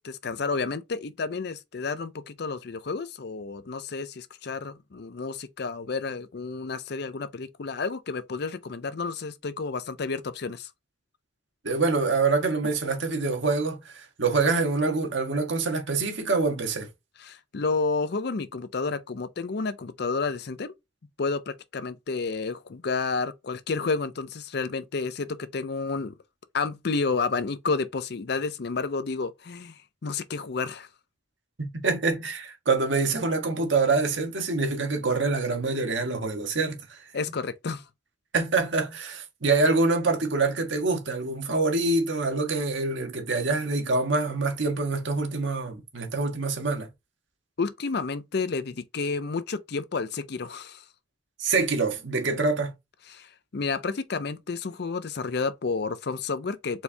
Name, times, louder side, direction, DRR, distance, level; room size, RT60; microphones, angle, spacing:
voice 1, 0.0-10.7 17.2-20.7 21.2-26.2 26.5-30.9 37.1-37.8 47.6-50.8 53.1-56.8, left 4 dB, 60° left, 0.5 m, -30 dB
voice 2, 11.6-16.9 31.6-37.0 38.3-46.9 51.4-52.7, right 3 dB, 85° right, 1.4 m, -25 dB
4.5 x 3.4 x 2.7 m
head